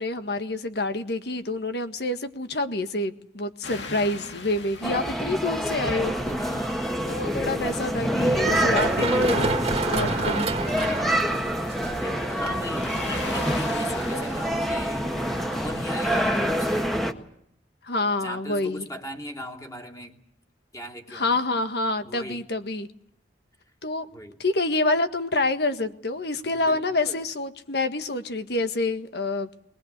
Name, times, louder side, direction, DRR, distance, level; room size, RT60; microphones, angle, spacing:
voice 1, 0.0-6.3 7.0-9.6 9.9-10.5 17.8-18.9 21.1-22.9 23.8-24.1 24.4-29.5, left 2 dB, 65° left, 9 dB, 1.7 m, -27 dB
sound 1, 3.6-16.8, left 3 dB, 90° left, 2.3 m, -42 dB
sound 2, 4.8-17.1, equal, ahead, 1.6 m, -26 dB
voice 2, 6.4-6.9 10.1-11.4 11.8-15.1 15.5-16.9 18.2-20.2 20.7-21.4 22.0-22.4 24.1-24.4 26.4-27.2, equal, 20° left, 3 dB, 3.0 m, -39 dB
Run, 8.2-15.7, right 2 dB, 35° right, 2.1 m, -31 dB
22.5 x 20.5 x 8.2 m, 0.73 s
head